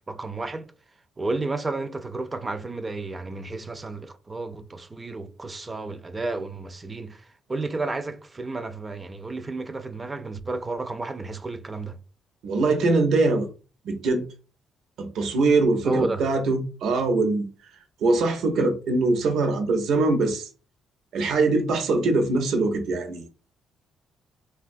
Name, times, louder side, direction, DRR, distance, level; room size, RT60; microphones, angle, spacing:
voice 1, 0.1-0.7 1.2-12.0 15.8-16.2, right 3 dB, 25° right, 0.3 m, -31 dB
voice 2, 12.4-13.5 13.8-14.3 15.0-17.5 18.0-20.5 21.1-23.3, right 3 dB, 75° right, 0.6 m, -22 dB
3.0 x 2.2 x 2.5 m
cardioid pair, 90°, 0 cm